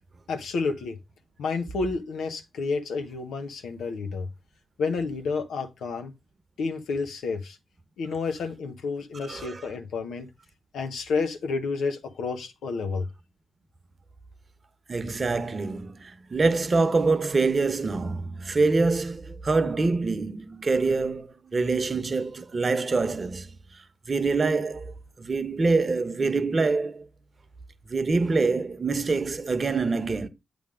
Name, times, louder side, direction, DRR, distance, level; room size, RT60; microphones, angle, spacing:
voice 1, 0.3-0.9 1.4-4.3 4.8-6.1 6.6-7.6 8.0-10.3 10.7-13.1, left 4 dB, 75° left, 0.9 m, -30 dB
voice 2, 9.2-9.7 14.9-23.6 24.1-24.9 25.2-27.1 27.9-30.3, right 3 dB, 45° right, 0.9 m, -25 dB
7.9 x 3.4 x 4.9 m
hypercardioid pair, 40°, 0 cm